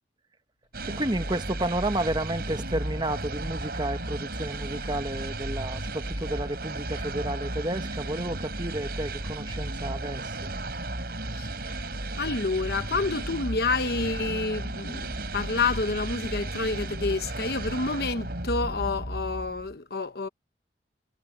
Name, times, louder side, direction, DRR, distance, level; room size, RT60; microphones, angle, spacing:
sound 1, 0.7-19.7, right 2 dB, 55° right, 5.8 m, -34 dB
voice 1, 0.8-10.5, right 1 dB, 25° right, 1.3 m, -31 dB
voice 2, 12.2-20.3, left 3 dB, 60° left, 1.0 m, -28 dB
head